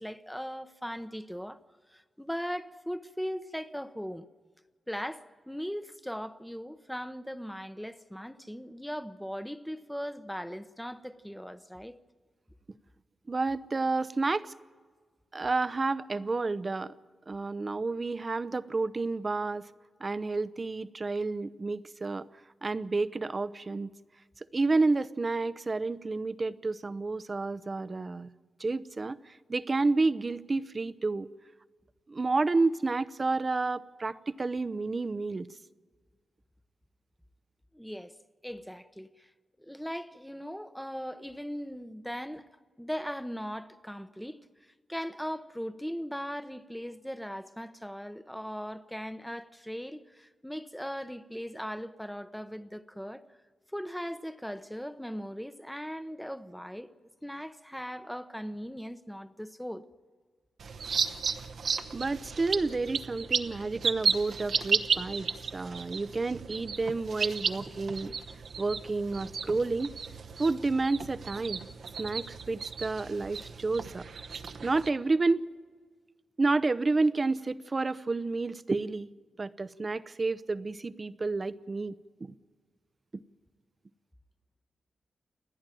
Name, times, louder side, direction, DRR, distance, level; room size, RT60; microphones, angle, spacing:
voice 1, 0.0-1.6 1.9-4.3 4.9-12.0 37.7-38.1 38.4-39.3 39.6-42.4 42.8-44.4 44.9-53.2 53.7-56.9 57.2-59.8, equal, ahead, 0.8 m, -39 dB
voice 2, 13.3-14.5 15.3-16.9 17.3-19.6 20.0-22.3 22.6-23.9 24.5-28.3 28.6-31.3 32.1-35.5 61.9-68.1 68.6-69.9 70.4-71.6 72.0-74.0 74.6-75.5 76.4-79.1 79.4-82.0 82.2-82.3, right 3 dB, 30° right, 0.6 m, -30 dB
sound 1, 60.6-74.9, right 5 dB, 70° right, 1.0 m, -34 dB
29.5 x 10.5 x 9.1 m
wide cardioid pair, 115°, 0 cm